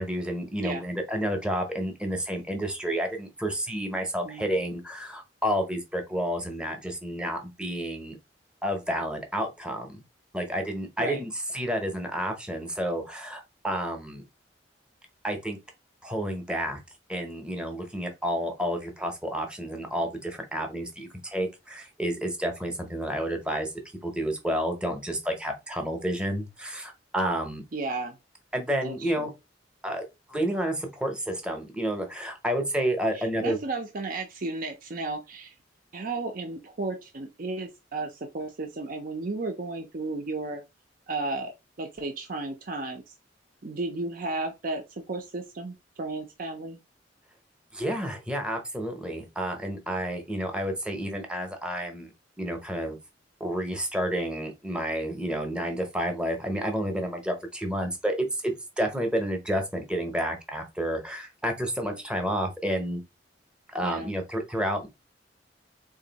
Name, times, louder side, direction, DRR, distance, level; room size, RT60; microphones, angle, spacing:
voice 1, 0.0-8.2 8.6-10.0 10.3-14.2 15.2-15.6 16.0-16.8 17.1-23.7 24.0-27.6 28.5-29.3 29.8-30.0 30.3-33.6 47.7-52.1 52.4-53.0 53.4-63.0 63.7-64.9, equal, 5° right, 0.8 m, -30 dB
voice 2, 27.7-28.2 28.8-29.3 33.1-35.5 35.9-40.6 41.1-43.1 43.6-46.8 63.8-64.1, right 3 dB, 50° right, 0.6 m, -34 dB
3.7 x 2.6 x 4.0 m
head